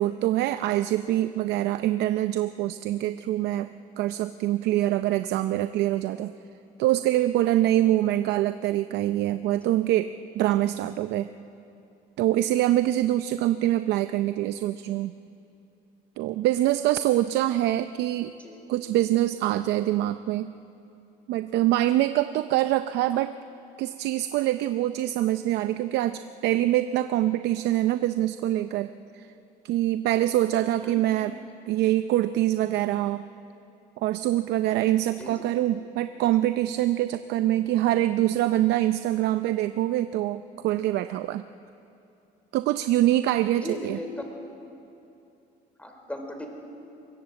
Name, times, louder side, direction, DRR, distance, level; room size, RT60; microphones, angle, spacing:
voice 1, 0.0-3.7 4.0-6.3 6.8-11.3 12.2-15.1 16.2-18.3 18.7-20.5 21.3-23.4 23.8-29.3 29.6-31.4 31.7-33.2 34.0-41.4 42.5-44.0, right 14 dB, 85° right, 11 dB, 0.6 m, -24 dB
voice 2, 43.6-44.1 45.8-46.5, left 1 dB, 10° left, 3 dB, 4.0 m, -37 dB
24.0 x 20.5 x 7.7 m, 2.7 s
cardioid pair, 110°, 17 cm